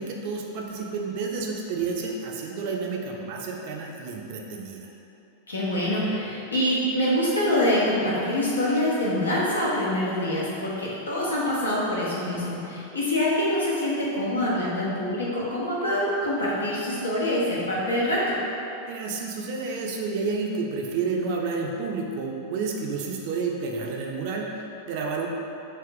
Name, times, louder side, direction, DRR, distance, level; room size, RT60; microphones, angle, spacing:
voice 1, 0.0-4.9 18.9-25.3, right 4 dB, 45° right, 0 dB, 0.5 m, -30 dB
voice 2, 5.5-18.4, left 1 dB, 75° left, -7 dB, 1.0 m, -25 dB
3.3 x 3.2 x 4.6 m, 2.8 s
figure-of-eight pair, 90°, 0 cm